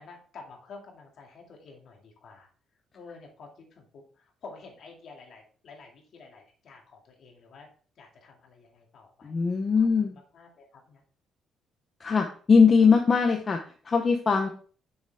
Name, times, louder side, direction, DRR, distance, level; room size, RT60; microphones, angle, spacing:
voice 1, 0.0-2.5 2.9-7.7 8.0-9.4 9.8-9.9 10.3-11.0, left 4 dB, 50° left, 1 dB, 2.3 m, -49 dB
voice 2, 9.2-10.2 12.0-13.6 13.8-14.5, left 5 dB, 30° left, 3 dB, 0.7 m, -21 dB
6.8 x 6.7 x 3.5 m, 0.42 s
cardioid pair, 160°, 0 cm